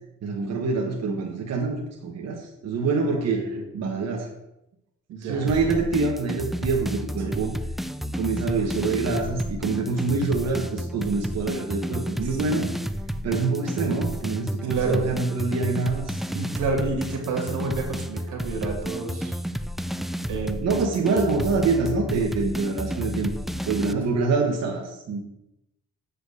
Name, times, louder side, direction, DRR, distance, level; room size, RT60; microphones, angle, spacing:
voice 1, 0.2-3.4 3.7-4.3 5.2-7.5 8.1-12.7 13.2-16.2 20.6-23.3 23.7-25.2, right 4 dB, 60° right, 0 dB, 1.5 m, -25 dB
voice 2, 3.3-3.6 5.1-5.5 7.3-7.4 12.2-12.7 14.7-15.1 16.3-19.4 20.3-20.8 21.1-21.2 23.9-24.0, right 4 dB, 85° right, 2 dB, 2.5 m, -30 dB
sound 1, 5.5-23.9, equal, ahead, 0.4 m, -31 dB
8.3 x 4.9 x 6.4 m, 0.89 s
cardioid pair, 90°, 30 cm